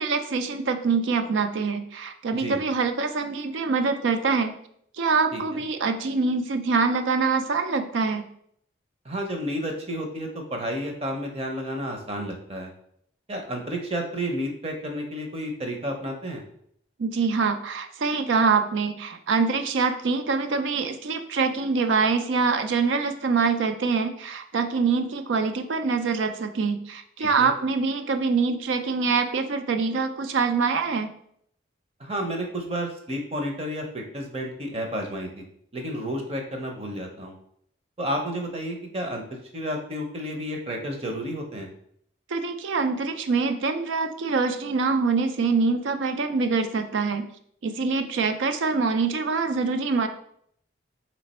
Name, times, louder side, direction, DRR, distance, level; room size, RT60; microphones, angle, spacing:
voice 1, 0.0-4.5 5.0-8.2 17.0-31.1 42.3-47.3 47.6-50.1, right 4 dB, 80° right, 8 dB, 0.4 m, -24 dB
voice 2, 9.0-12.7 13.3-16.4 27.2-27.5 32.0-35.4 35.7-37.4 38.0-41.7, equal, 30° right, 3 dB, 0.7 m, -31 dB
3.3 x 3.2 x 4.2 m, 0.68 s
head